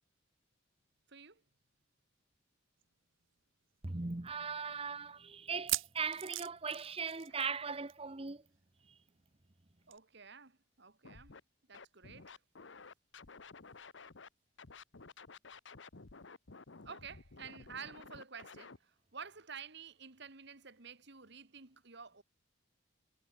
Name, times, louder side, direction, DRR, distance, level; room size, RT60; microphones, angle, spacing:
voice 1, 1.1-1.4 7.3-7.4 9.9-11.3 11.7-12.4 16.8-22.2, right 6 dB, 55° right, 2.1 m, -51 dB
sound 1, 2.8-2.9 3.2-3.3 3.9-4.0 5.5-7.6 7.9-8.1 8.3-8.4 9.9-10.0, right 15 dB, 80° right, 2.2 m, -39 dB
voice 2, 3.8-8.4, right 5 dB, 30° right, 0.9 m, -39 dB
Scratching (performance technique), 11.0-11.4 11.7-14.3 14.6-18.8, left 4 dB, 65° left, 1.2 m, -53 dB
head